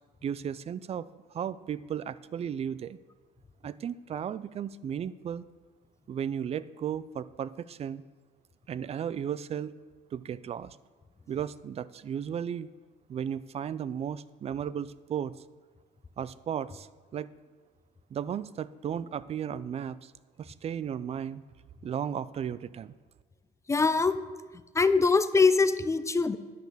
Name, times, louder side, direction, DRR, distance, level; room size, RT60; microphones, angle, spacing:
voice 1, 0.2-1.1 1.3-3.0 3.6-5.4 6.1-8.0 8.7-9.7 10.1-10.8 11.3-12.7 13.1-15.3 16.2-16.9 17.1-17.3 18.1-20.1 20.4-21.4 21.8-22.9, right 8 dB, 35° right, 18 dB, 0.4 m, -35 dB
voice 2, 23.7-24.1 24.7-26.4, left 4 dB, 15° left, 13 dB, 0.5 m, -23 dB
10.5 x 6.1 x 7.0 m, 1.4 s
cardioid pair, 110°, 17 cm